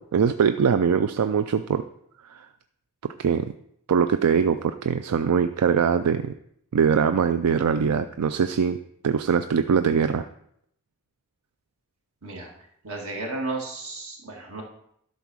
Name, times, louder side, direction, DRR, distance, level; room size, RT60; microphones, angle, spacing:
voice 1, 0.0-1.8 2.3-2.5 3.0-3.5 3.9-6.3 6.7-8.8 9.0-10.3, right 6 dB, 90° right, 10 dB, 0.4 m, -22 dB
voice 2, 12.2-12.5 12.8-14.6, right 2 dB, 65° right, 0 dB, 2.0 m, -33 dB
12.0 x 4.1 x 6.2 m, 0.72 s
head